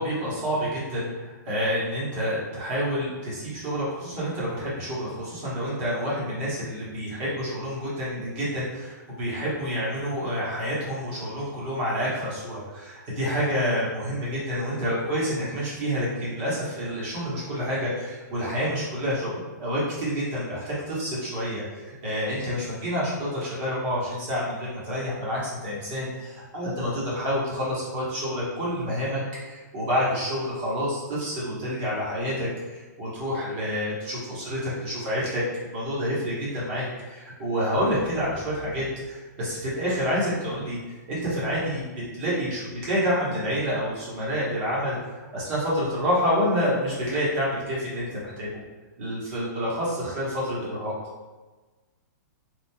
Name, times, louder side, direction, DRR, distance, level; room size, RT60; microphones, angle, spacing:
voice 1, 0.0-48.6 49.0-50.9, equal, 30° right, -7 dB, 1.1 m, -28 dB
3.0 x 2.3 x 2.2 m, 1.3 s
hypercardioid pair, 160°, 10 cm